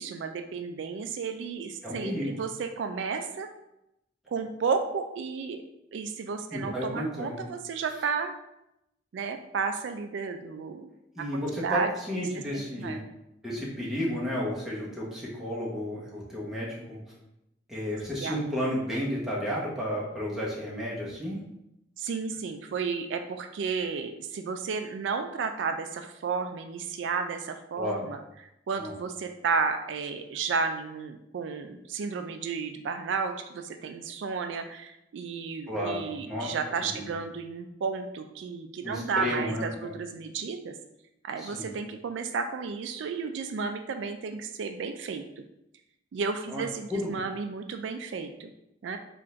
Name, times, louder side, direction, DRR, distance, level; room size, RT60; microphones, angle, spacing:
voice 1, 0.0-3.5 4.3-5.6 5.9-8.3 9.1-10.9 11.6-11.9 12.5-13.0 18.2-18.4 22.0-28.2 28.7-40.7 41.2-45.2 46.1-48.5 48.8-49.0, right 5 dB, 70° right, 6 dB, 0.3 m, -32 dB
voice 2, 1.8-2.4 6.5-7.4 11.1-13.0 13.4-17.0 17.7-21.4 27.8-28.1 28.8-28.9 35.7-36.5 36.9-37.1 38.8-39.9 41.4-41.7 46.5-46.6 46.9-47.1, equal, 5° right, -6 dB, 1.0 m, -32 dB
3.7 x 2.5 x 4.3 m, 0.85 s
head